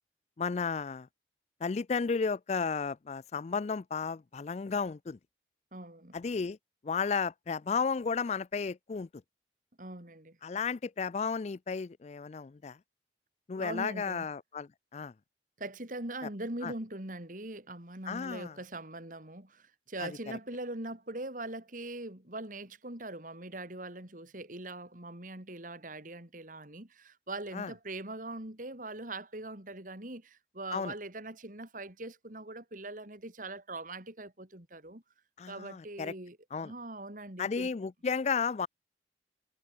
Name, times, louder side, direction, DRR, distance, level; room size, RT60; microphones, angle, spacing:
voice 1, 0.4-1.1 1.6-5.2 6.1-6.6 6.8-9.1 10.4-12.8 13.5-15.1 16.6-16.7 18.1-18.5 20.0-20.1 27.5-27.7 30.7-30.9 35.4-36.1 36.5-36.7 37.4-38.7, left 5 dB, 40° left, 0.4 m, -33 dB
voice 2, 5.7-6.2 9.8-10.4 13.6-14.3 15.6-35.0 35.5-37.7, right 2 dB, 50° right, 3.5 m, -42 dB
head